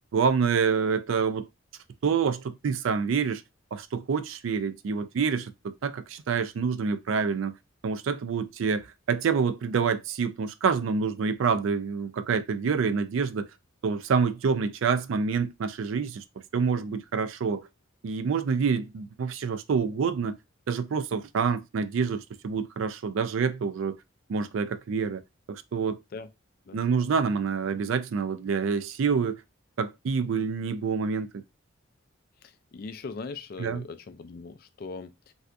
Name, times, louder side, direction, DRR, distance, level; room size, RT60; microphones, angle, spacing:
voice 1, 0.1-1.5 2.0-3.4 3.7-7.6 7.8-13.5 13.8-16.2 16.5-17.7 18.0-20.3 20.7-24.0 24.3-25.2 25.5-26.0 26.7-29.4 29.8-31.3 33.6-33.8, right 5 dB, 70° right, 0.4 m, -27 dB
voice 2, 32.4-35.3, left 4 dB, 45° left, 0.3 m, -40 dB
3.4 x 2.7 x 2.4 m
head